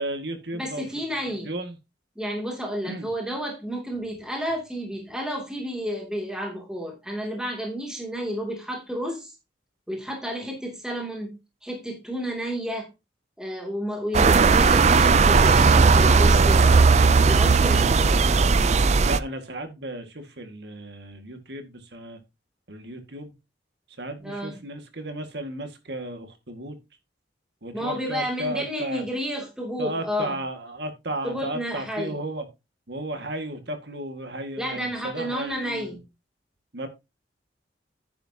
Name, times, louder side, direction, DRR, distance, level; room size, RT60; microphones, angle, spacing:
voice 1, 0.0-0.9 1.4-1.8 2.8-3.1 19.0-22.2 22.7-23.4 24.0-26.8 27.6-29.0 29.8-32.5 32.9-36.0 36.7-36.9, right 1 dB, 65° right, 1.9 m, -34 dB
voice 2, 0.5-1.5 2.2-9.3 9.9-11.4 11.6-12.9 13.4-16.8 17.2-18.3 24.2-24.6 27.7-30.4 31.2-32.2 34.6-36.0, equal, 5° right, 2.7 m, -31 dB
sound 1, 14.1-19.2, right 4 dB, 40° right, 0.4 m, -17 dB
10.0 x 9.6 x 2.9 m
head